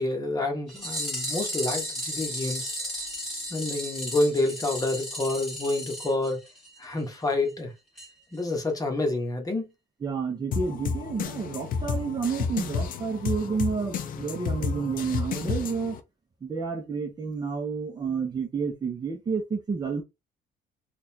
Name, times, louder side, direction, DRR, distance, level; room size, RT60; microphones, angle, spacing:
voice 1, 0.0-2.7 3.5-6.4 6.8-7.7 8.3-9.7, left 2 dB, 20° left, 1.1 m, -28 dB
sound 1, 0.7-6.9 7.1-7.2 7.5-7.6 8.0-8.1 8.4-8.5, equal, 5° left, 1.9 m, -34 dB
voice 2, 10.0-16.0 16.4-20.0, right 5 dB, 25° right, 0.8 m, -30 dB
sound 2, 10.5-16.0, left 5 dB, 55° left, 0.5 m, -31 dB
3.9 x 2.5 x 2.8 m
cardioid pair, 110°, 17 cm